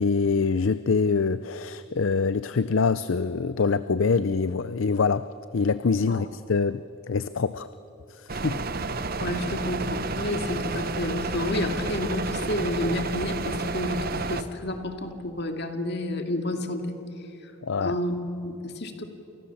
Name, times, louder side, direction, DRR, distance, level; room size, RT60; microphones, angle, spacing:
voice 1, 0.0-5.3 5.5-6.8 7.1-7.7 8.2-8.6 17.6-17.9, left 4 dB, 65° left, 14 dB, 0.5 m, -24 dB
sound 1, 8.3-14.4, right 3 dB, 45° right, 1.0 m, -30 dB
voice 2, 9.2-16.9 17.8-19.0, left 1 dB, 50° left, 5 dB, 2.4 m, -30 dB
29.5 x 28.0 x 7.2 m, 2.9 s
head